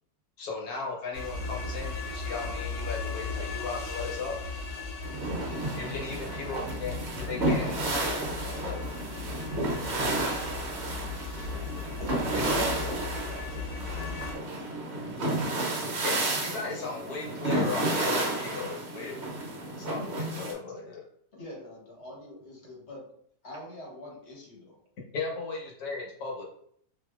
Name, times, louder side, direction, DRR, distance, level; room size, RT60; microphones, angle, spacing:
voice 1, 0.4-4.4 5.7-8.9 12.3-12.9 16.0-19.2 19.7-21.0 25.1-26.4, left 4 dB, 65° left, -1 dB, 1.3 m, -36 dB
sound 1, 1.1-14.3, left 4 dB, 85° left, 1.2 m, -37 dB
sound 2, 5.0-20.5, right 2 dB, 55° right, 0.8 m, -31 dB
voice 2, 11.0-11.7 12.0-12.2 20.7-20.8 21.3-23.1 23.4-24.8, left 1 dB, 45° left, -3 dB, 1.2 m, -45 dB
voice 3, 12.0-16.1 16.6-16.8, right 4 dB, 75° right, -1 dB, 1.1 m, -47 dB
4.0 x 2.5 x 2.3 m, 0.66 s
omnidirectional pair, 1.8 m